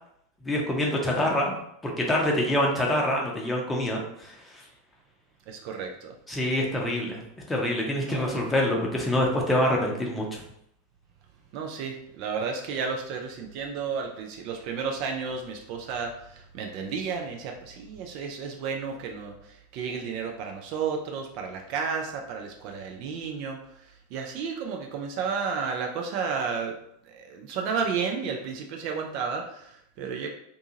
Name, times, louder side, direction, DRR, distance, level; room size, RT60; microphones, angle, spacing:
voice 1, 0.4-1.6 1.8-4.6 6.3-7.2 7.5-10.4, left 1 dB, 10° left, -1 dB, 0.7 m, -26 dB
voice 2, 1.2-1.5 5.5-6.2 8.0-8.5 11.5-26.8 27.0-30.3, right 5 dB, 45° right, 2 dB, 0.4 m, -32 dB
2.6 x 2.3 x 2.7 m, 0.74 s
figure-of-eight pair, 85°, 0 cm